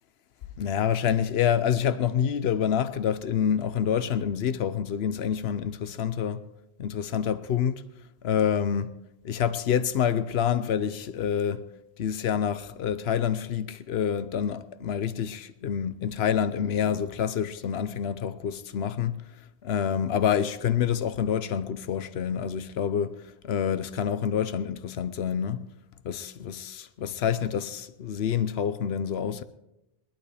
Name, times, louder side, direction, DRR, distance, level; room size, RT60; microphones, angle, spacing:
voice 1, 0.6-6.4 6.8-7.8 8.2-8.9 9.2-11.7 12.0-19.2 19.6-25.6 26.0-29.4, left 8 dB, 75° left, 1.0 m, -27 dB
21.5 x 12.0 x 3.4 m
omnidirectional pair, 1.1 m